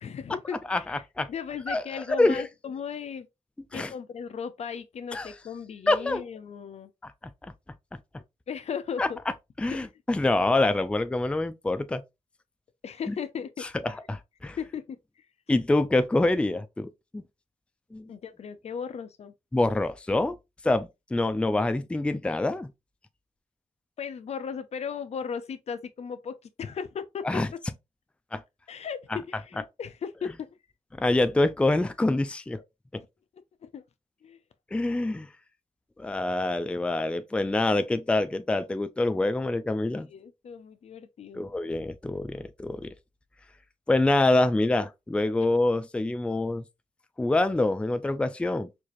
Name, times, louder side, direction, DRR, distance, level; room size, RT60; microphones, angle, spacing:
voice 1, 0.0-0.6 0.9-1.0 1.3-3.3 3.7-6.9 8.5-9.2 9.7-9.8 12.8-13.6 14.6-15.0 18.1-19.3 24.0-27.4 28.7-30.5 33.0-33.1 33.6-33.8 34.2-34.4 40.1-41.5, left 7 dB, 60° left, 0.5 m, -36 dB
voice 2, 0.7-1.3 1.7-2.5 3.7-3.9 5.1-5.3 5.9-6.2 7.0-7.1 9.0-9.1 9.6-12.0 13.1-13.2 13.8-14.6 15.5-17.2 17.9-18.1 19.5-20.4 20.6-22.7 27.2-27.5 28.3-28.4 31.0-32.6 32.9-33.0 34.7-35.3 36.0-40.1 41.3-42.9 43.9-46.6 47.2-48.7, left 2 dB, 10° left, 0.4 m, -26 dB
4.5 x 2.4 x 2.5 m
cardioid pair, 80°, 12 cm